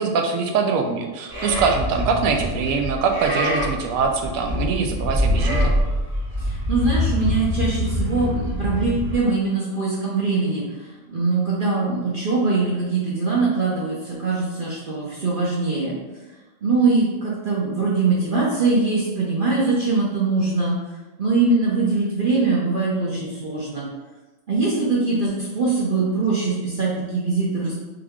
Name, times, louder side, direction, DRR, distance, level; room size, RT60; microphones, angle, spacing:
voice 1, 0.0-5.7, right 5 dB, 85° right, 4 dB, 1.0 m, -23 dB
Livestock farm animals working animals, 1.3-9.2, left 1 dB, 20° right, 0.9 m, -24 dB
voice 2, 6.4-15.9 16.6-20.7 21.2-23.9 24.5-27.8, right 3 dB, 45° right, -5 dB, 0.8 m, -22 dB
3.6 x 3.4 x 3.5 m, 1.2 s
omnidirectional pair, 1.5 m